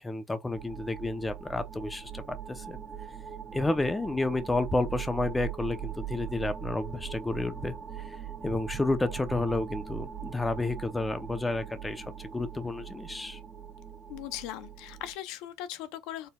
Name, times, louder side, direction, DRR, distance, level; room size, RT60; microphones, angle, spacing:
voice 1, 0.0-2.8 3.5-7.7 8.1-8.2 8.4-13.4, left 2 dB, 15° left, 0.7 m, -31 dB
sound 1, 0.5-15.1, right 9 dB, 15° right, 1.5 m, -41 dB
voice 2, 14.1-16.3, left 12 dB, 80° left, 0.6 m, -39 dB
4.4 x 3.3 x 2.3 m
cardioid pair, 105°, 0 cm